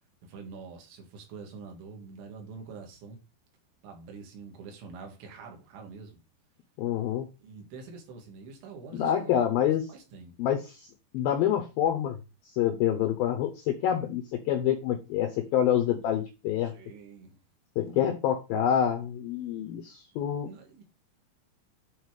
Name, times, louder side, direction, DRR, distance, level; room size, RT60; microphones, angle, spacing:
voice 1, 0.2-3.2 3.8-6.2 7.4-9.3 9.9-10.3 16.6-17.4 20.4-20.8, right 4 dB, 80° right, 4.3 m, -45 dB
voice 2, 6.8-7.3 8.9-9.9 10.4-12.2 12.5-16.7 17.8-20.5, left 10 dB, 85° left, 2.1 m, -27 dB
10.0 x 4.4 x 4.8 m
omnidirectional pair, 5.4 m